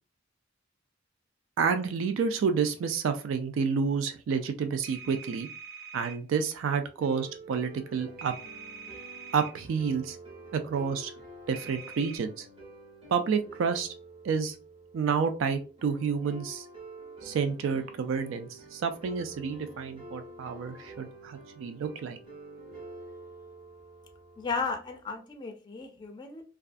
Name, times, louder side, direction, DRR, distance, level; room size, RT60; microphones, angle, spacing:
voice 1, 1.6-5.5 5.9-8.3 9.3-10.2 10.5-11.1 11.5-12.5 13.1-13.9 14.2-14.6 14.9-16.7 17.2-22.2, right 6 dB, 80° right, 8 dB, 0.3 m, -29 dB
sound 1, 4.8-6.2 8.2-9.5 11.5-12.2, right 6 dB, 55° right, 0.7 m, -44 dB
sound 2, 7.0-25.0, right 2 dB, 30° right, 1.0 m, -48 dB
voice 2, 24.4-26.4, left 4 dB, 20° left, 4 dB, 0.4 m, -34 dB
2.3 x 2.3 x 2.4 m, 0.36 s
head